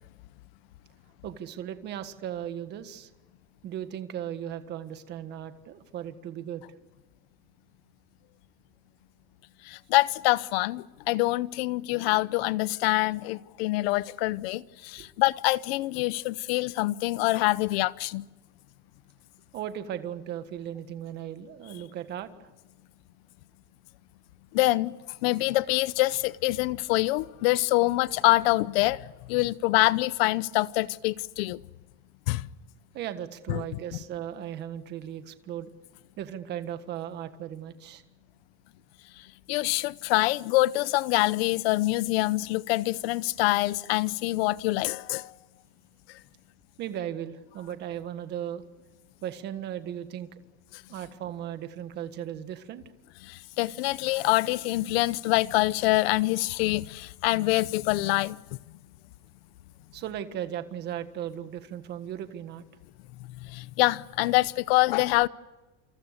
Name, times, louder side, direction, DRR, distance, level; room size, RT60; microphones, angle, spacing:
voice 1, 1.2-3.1 3.6-6.6 15.0-15.1 19.5-22.3 32.9-35.7 36.2-38.0 46.8-48.6 49.2-50.3 50.9-52.8 59.9-62.6, right 10 dB, 30° right, 1.6 m, -36 dB
voice 2, 9.7-18.3 24.5-24.9 25.2-31.6 32.3-32.5 33.5-33.6 39.5-45.3 53.2-58.4 63.4-65.3, left 19 dB, 60° left, 0.8 m, -25 dB
28.5 x 26.5 x 6.7 m
cardioid pair, 180°, 35 cm